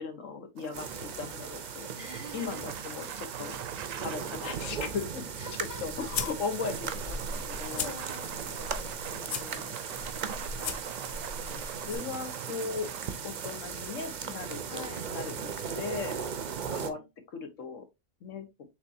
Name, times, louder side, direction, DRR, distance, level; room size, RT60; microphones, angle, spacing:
voice 1, 0.0-1.9 2.3-3.6 4.0-5.2 5.6-8.0 9.0-9.8 10.5-10.7 11.3-12.9 13.2-16.2 16.7-17.0 17.3-17.9 18.2-18.5, left 5 dB, 80° left, 1.3 m, -38 dB
sound 1, 0.6-16.6, right 10 dB, 85° right, 1.0 m, -45 dB
sound 2, 0.7-16.9, right 6 dB, 50° right, 0.5 m, -38 dB
voice 2, 1.9-2.6 5.4-6.1 7.7-8.9 9.9-10.6 11.7-12.0 14.7-15.1 16.5-17.1, equal, 15° left, 0.9 m, -47 dB
sound 3, 5.3-12.0, left 5 dB, 55° left, 0.6 m, -40 dB
6.6 x 2.9 x 2.7 m
omnidirectional pair, 1.3 m